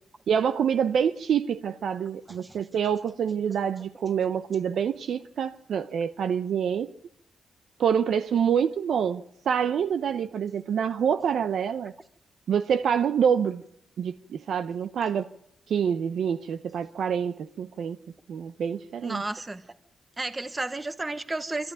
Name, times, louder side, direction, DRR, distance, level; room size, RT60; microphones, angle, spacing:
voice 1, 0.3-6.9 7.8-11.9 12.5-13.6 14.0-15.3 15.7-18.0 18.3-19.2, right 7 dB, 80° right, 0.8 m, -26 dB
voice 2, 2.3-2.7 19.0-19.7 20.2-21.7, right 2 dB, 20° right, 1.0 m, -33 dB
23.0 x 14.0 x 9.3 m
wide cardioid pair, 125°, 0 cm